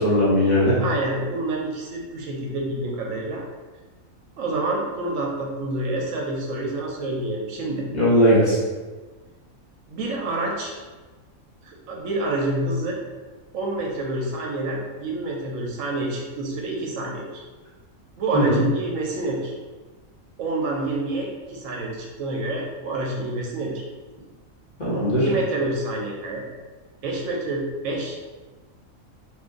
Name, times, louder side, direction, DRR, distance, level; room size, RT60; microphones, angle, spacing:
voice 1, 0.0-0.8 7.9-8.6 18.3-18.6 24.8-25.3, equal, 35° left, -9 dB, 1.1 m, -18 dB
voice 2, 0.8-3.5 4.4-7.9 9.9-10.7 11.6-13.0 13.5-17.4 18.2-19.5 20.4-23.8 25.2-26.4 27.0-28.2, right 2 dB, 75° right, -1 dB, 0.9 m, -28 dB
2.8 x 2.5 x 3.6 m, 1.3 s
omnidirectional pair, 1.4 m